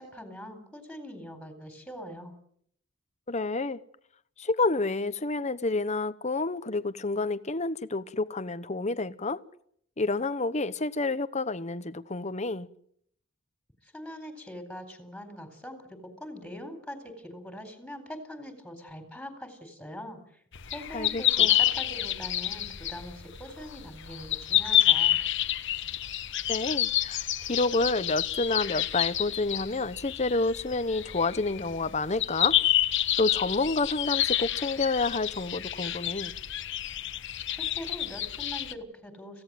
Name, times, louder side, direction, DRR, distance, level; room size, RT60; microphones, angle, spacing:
voice 1, 0.0-2.3 13.8-15.9 16.2-20.2 20.7-25.2 37.5-39.4, equal, ahead, 4.2 m, -42 dB
voice 2, 3.3-3.8 4.4-9.4 10.0-12.7 20.9-21.6 26.5-32.6 33.2-36.3, left 3 dB, 35° left, 1.0 m, -29 dB
sound 1, 20.5-38.7, left 12 dB, 60° left, 1.2 m, -29 dB
26.5 x 17.0 x 7.8 m
head